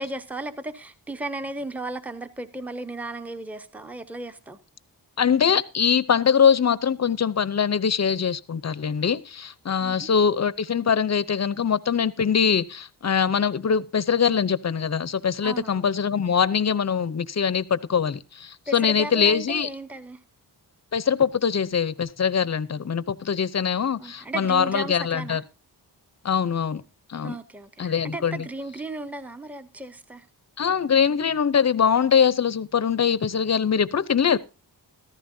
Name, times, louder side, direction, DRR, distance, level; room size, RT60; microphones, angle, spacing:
voice 1, 0.0-4.6 9.8-10.1 15.4-15.8 18.7-20.2 24.0-25.4 27.2-30.3, right 2 dB, 5° right, 9 dB, 0.8 m, -35 dB
voice 2, 5.2-19.7 20.9-25.4 26.2-26.8 27.1-27.3 27.8-28.4 30.6-34.4, left 7 dB, 40° left, 17 dB, 0.7 m, -23 dB
15.0 x 14.0 x 2.7 m, 0.31 s
wide cardioid pair, 125°, 42 cm